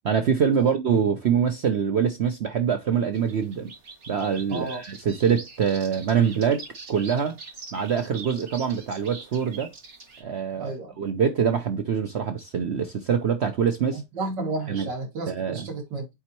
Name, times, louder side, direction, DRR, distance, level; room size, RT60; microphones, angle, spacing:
voice 1, 0.0-3.7 4.1-6.6 6.9-7.3 7.7-9.7 10.2-14.0 14.7-14.9 15.3-15.6, right 7 dB, 65° right, 0.6 m, -24 dB
sound 1, 3.1-10.2, right 4 dB, 45° right, 1.8 m, -43 dB
voice 2, 4.5-4.8 10.6-10.9 13.9-16.1, right 3 dB, 85° right, 3.0 m, -32 dB
8.2 x 4.3 x 3.0 m
omnidirectional pair, 1.9 m